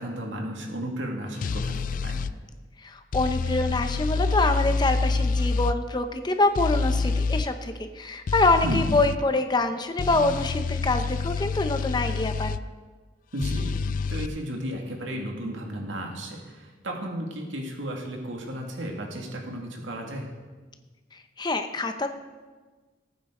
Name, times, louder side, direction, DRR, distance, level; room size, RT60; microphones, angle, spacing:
voice 1, 0.0-2.2 8.6-8.9 13.3-20.3, right 1 dB, 90° right, 1 dB, 2.1 m, -34 dB
sound 1, 1.4-2.3 3.1-5.8 6.6-7.5 8.3-9.2 10.0-12.6 13.4-14.3, left 4 dB, 45° left, 0.3 m, -27 dB
voice 2, 2.8-12.6 21.1-22.1, left 2 dB, 25° left, 7 dB, 0.8 m, -25 dB
18.5 x 9.2 x 3.8 m, 1.3 s
head